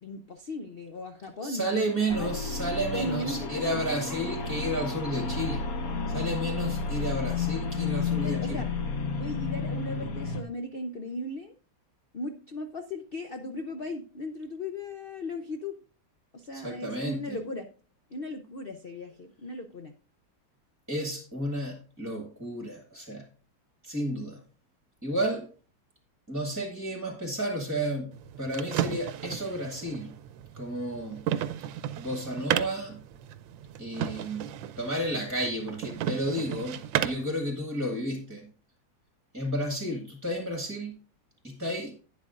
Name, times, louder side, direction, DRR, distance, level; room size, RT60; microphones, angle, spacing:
voice 1, 0.0-2.3 2.8-4.4 8.1-8.7 9.2-11.5 12.1-15.8 16.3-17.7 18.1-19.9, left 2 dB, 85° left, 6 dB, 0.5 m, -37 dB
voice 2, 1.4-5.6 6.1-8.6 16.5-17.4 20.9-23.2 23.8-24.4 25.0-25.5 26.3-28.1 28.4-30.1 30.5-31.2 32.0-33.0 33.8-34.5 34.8-38.5 39.3-40.9 41.4-41.9, right 1 dB, 10° right, 3 dB, 1.2 m, -32 dB
sound 1, 2.1-10.4, left 4 dB, 55° left, 1.3 m, -32 dB
sound 2, 28.1-37.3, right 11 dB, 80° right, 1.4 m, -34 dB
11.5 x 9.6 x 2.5 m, 0.38 s
omnidirectional pair, 2.0 m